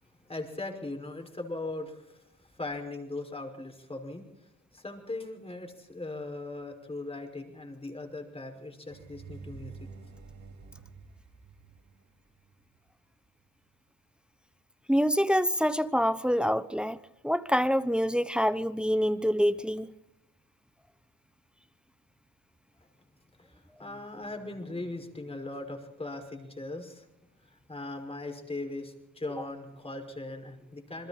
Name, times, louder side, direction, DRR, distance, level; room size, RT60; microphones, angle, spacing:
voice 1, 0.3-9.9 23.4-27.1 27.5-31.1, left 2 dB, 20° left, 5.6 m, -39 dB
sound 1, 8.9-12.8, right 5 dB, 70° right, 5.8 m, -48 dB
voice 2, 14.9-17.0 17.2-19.9, equal, 5° right, 1.0 m, -26 dB
28.0 x 21.5 x 4.3 m
cardioid pair, 90°, 30 cm